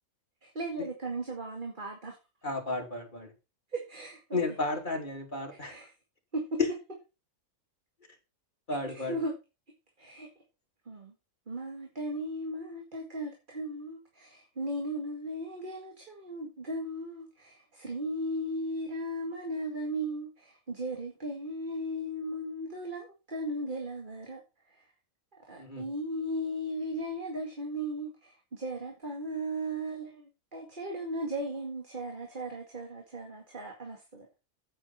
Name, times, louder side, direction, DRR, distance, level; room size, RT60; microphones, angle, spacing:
voice 1, 0.4-2.2 3.7-4.4 5.5-5.9 6.3-6.6 8.9-9.3 10.0-10.3 10.9-11.1 11.5-24.9 25.5-34.3, right 1 dB, 35° right, 2.2 m, -36 dB
voice 2, 2.4-3.3 4.3-5.7 8.7-9.2 25.6-25.8, left 2 dB, 35° left, 3.1 m, -33 dB
9.7 x 9.3 x 4.3 m
omnidirectional pair, 1.5 m